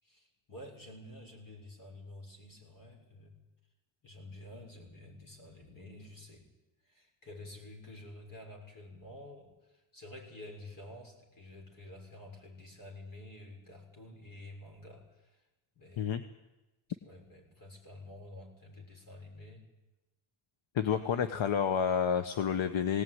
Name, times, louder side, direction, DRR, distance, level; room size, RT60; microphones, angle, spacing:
voice 1, 0.0-3.4 4.0-6.4 6.8-15.4 15.7-16.2 16.9-19.6 20.8-21.5, left 1 dB, 40° left, 1 dB, 6.4 m, -50 dB
voice 2, 20.7-23.0, left 7 dB, 70° left, 9 dB, 1.1 m, -29 dB
20.0 x 18.0 x 9.5 m, 1.0 s
wide cardioid pair, 150°, 48 cm